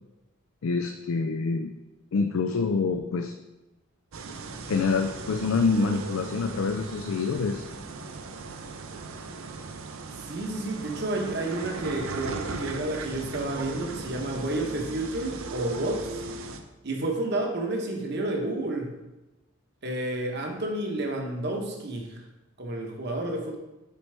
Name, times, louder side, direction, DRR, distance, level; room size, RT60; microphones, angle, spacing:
voice 1, 0.6-1.7 2.1-3.3 4.7-7.6, left 4 dB, 90° left, 6 dB, 0.4 m, -26 dB
sound 1, 4.1-16.6, right 4 dB, 80° right, 0.6 m, -37 dB
voice 2, 10.2-16.1 16.8-18.9 19.8-22.2 22.6-23.6, right 1 dB, 55° right, 2 dB, 1.0 m, -30 dB
6.7 x 4.6 x 3.3 m, 1.0 s
head